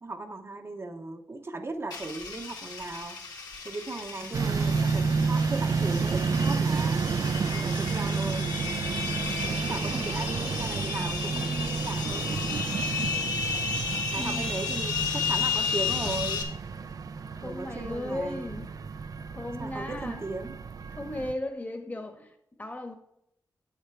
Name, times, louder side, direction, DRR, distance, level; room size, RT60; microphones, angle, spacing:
voice 1, 0.0-3.2 3.6-8.5 9.6-12.7 14.1-16.4 17.4-18.5 19.6-20.6, right 3 dB, 35° right, 5 dB, 0.9 m, -37 dB
sound 1, 1.9-16.4, left 5 dB, 65° left, 1.8 m, -33 dB
sound 2, 4.3-21.3, right 5 dB, 60° right, 0.5 m, -30 dB
voice 2, 14.1-14.4 17.4-18.7 19.2-20.2 20.9-22.9, left 1 dB, 20° left, 5 dB, 1.3 m, -36 dB
8.0 x 6.8 x 4.6 m, 0.77 s
cardioid pair, 60°, 7 cm